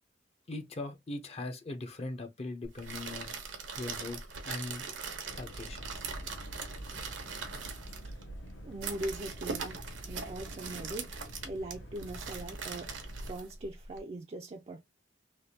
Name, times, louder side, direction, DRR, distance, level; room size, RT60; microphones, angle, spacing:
voice 1, 0.5-3.4 3.7-4.2 4.4-4.8 5.3-5.9, left 2 dB, 35° left, 0.5 m, -40 dB
sound 1, 2.6-14.0, right 5 dB, 80° right, 0.9 m, -41 dB
sound 2, 5.3-13.3, equal, 75° left, 0.8 m, -47 dB
voice 2, 8.6-11.2 11.4-14.8, right 1 dB, 30° right, 0.4 m, -41 dB
3.3 x 2.2 x 2.7 m
head